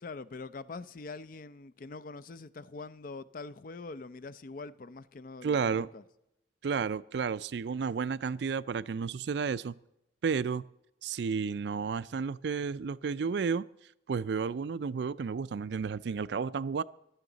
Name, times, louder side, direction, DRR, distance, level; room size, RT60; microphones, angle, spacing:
voice 1, 0.0-6.0, left 3 dB, 50° left, 0.5 m, -44 dB
voice 2, 5.4-5.9 6.6-9.8 10.2-10.6 11.0-13.7 14.1-16.8, right 5 dB, 70° right, 0.4 m, -32 dB
15.5 x 12.0 x 4.0 m
head